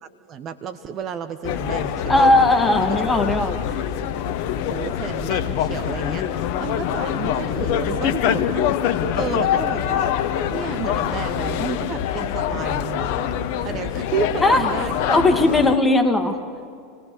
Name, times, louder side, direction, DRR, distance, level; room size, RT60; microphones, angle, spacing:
voice 1, 0.0-2.3 2.8-3.0 4.7-8.7 9.1-10.1 10.5-13.3 13.6-15.2, right 7 dB, 40° right, 10 dB, 1.0 m, -31 dB
sound 1, 1.4-15.8, left 10 dB, 55° left, 1.0 m, -24 dB
voice 2, 2.1-3.8 14.4-14.6 15.1-16.4, left 2 dB, 10° left, 5 dB, 2.2 m, -18 dB
28.5 x 17.5 x 7.0 m, 2.3 s
hypercardioid pair, 85°, 0 cm